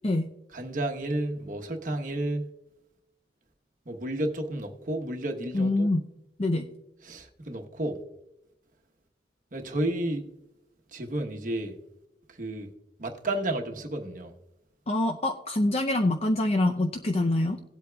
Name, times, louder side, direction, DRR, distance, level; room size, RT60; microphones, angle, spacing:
voice 1, 0.5-2.5 3.9-5.9 7.0-8.0 9.5-10.3 10.9-11.7 12.4-12.7 13.0-14.3, right 1 dB, 45° right, 1.1 m, -31 dB
voice 2, 5.5-6.0 6.4-6.7 14.9-17.6, left 2 dB, 35° left, 0.5 m, -25 dB
18.0 x 8.2 x 2.3 m
head